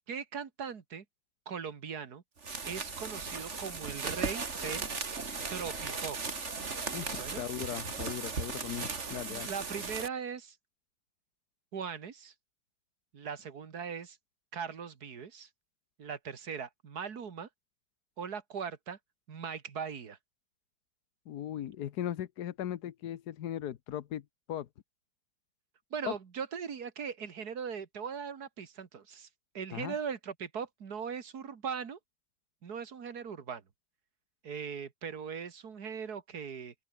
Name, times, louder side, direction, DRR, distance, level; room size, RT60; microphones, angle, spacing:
voice 1, 0.1-1.0 1.5-2.2 2.6-4.9 5.5-6.4 7.2-7.4 9.2-10.6 11.7-12.3 13.1-14.2 14.5-15.5 16.0-17.5 18.2-19.0 19.3-20.2 25.9-29.3 29.5-32.0 32.6-33.6 34.4-36.7, right 6 dB, 80° right, 2.3 m, -39 dB
sound 1, 2.4-10.1, right 4 dB, 45° right, 2.5 m, -37 dB
voice 2, 6.9-9.5 21.3-24.7 26.0-26.1 29.7-29.9, left 11 dB, 80° left, 1.5 m, -38 dB
open air
omnidirectional pair, 1.7 m